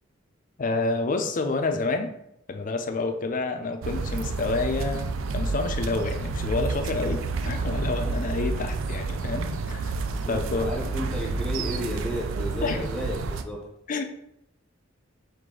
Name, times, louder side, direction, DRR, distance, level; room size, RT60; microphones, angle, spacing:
voice 1, 0.6-2.1 2.5-9.9 10.3-10.7 12.6-12.8 13.9-14.0, left 3 dB, 40° left, 6 dB, 0.4 m, -28 dB
sound 1, 3.8-13.4, right 3 dB, 85° right, 0.4 m, -30 dB
voice 2, 10.1-13.6, equal, 5° left, -3 dB, 0.7 m, -33 dB
4.8 x 2.6 x 3.7 m, 0.79 s
head